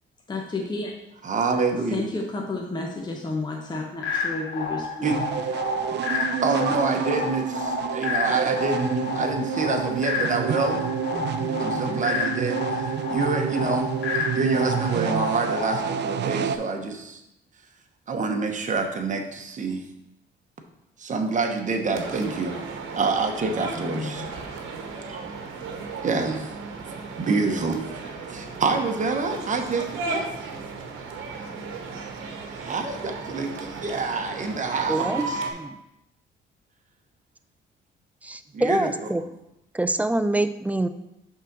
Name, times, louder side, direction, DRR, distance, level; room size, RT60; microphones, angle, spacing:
voice 1, 0.3-0.9 1.7-4.9 5.2-5.3 11.1-12.0 13.4-13.5 22.0-22.4 23.7-24.3, left 3 dB, 20° left, 0 dB, 0.9 m, -32 dB
voice 2, 1.2-2.0 5.0-5.2 6.4-10.8 11.6-14.0 14.3-17.2 18.1-19.8 21.0-22.6 23.0-24.2 25.1-25.2 26.0-26.5 27.2-27.8 28.3-30.3 32.6-35.4 38.5-39.3, right 4 dB, 40° right, 4 dB, 1.0 m, -27 dB
sound 1, 4.0-16.0, left 4 dB, 75° left, 0.9 m, -31 dB
sound 2, 5.0-16.6, right 8 dB, 60° right, 0.5 m, -28 dB
sound 3, 21.9-35.5, right 4 dB, 85° right, 1.0 m, -35 dB
voice 3, 34.9-35.8 38.2-39.2 39.7-40.9, right 1 dB, 5° right, 11 dB, 0.4 m, -25 dB
5.5 x 3.8 x 6.0 m, 0.86 s
cardioid pair, 90°, 20 cm